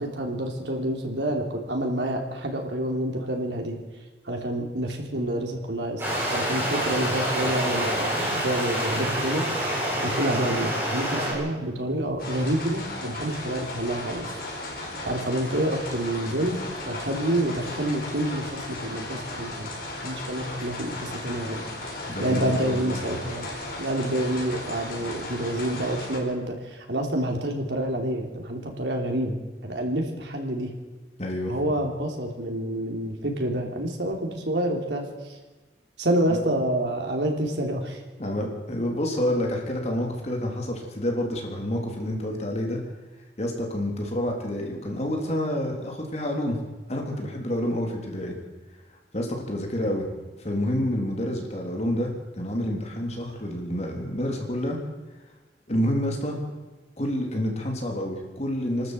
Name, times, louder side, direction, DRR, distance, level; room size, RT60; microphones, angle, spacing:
voice 1, 0.0-3.8 4.3-6.0 6.3-9.7 10.0-14.3 15.0-16.6 16.9-19.7 20.0-21.6 22.2-23.5 23.8-29.4 29.6-30.7 31.5-35.4 36.0-38.0, right 1 dB, 85° right, 2 dB, 3.5 m, -28 dB
Stream, 6.0-11.3, equal, 15° right, 7.9 m, -27 dB
sound 1, 12.2-26.2, left 2 dB, 55° left, 4.9 m, -36 dB
voice 2, 22.1-23.1 31.2-31.5 38.2-42.8 43.4-46.6 46.9-48.4 49.1-50.1 50.4-54.8 55.7-56.4 57.0-58.9, left 1 dB, 40° left, 1 dB, 3.6 m, -28 dB
25.0 x 12.5 x 8.1 m, 1.2 s
head